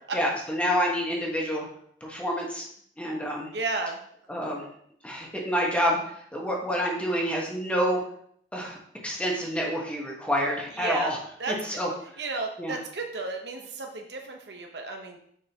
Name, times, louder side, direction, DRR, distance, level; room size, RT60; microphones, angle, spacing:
voice 1, 0.1-1.7 2.0-2.6 3.0-3.5 4.3-4.6 5.0-8.0 8.5-8.8 9.0-11.2 11.5-11.9 12.6-12.8, equal, 5° left, -2 dB, 1.3 m, -28 dB
voice 2, 3.5-4.0 10.8-11.1 11.4-11.5 12.2-15.2, right 3 dB, 70° right, 3 dB, 1.0 m, -33 dB
6.9 x 5.4 x 2.9 m, 0.64 s
head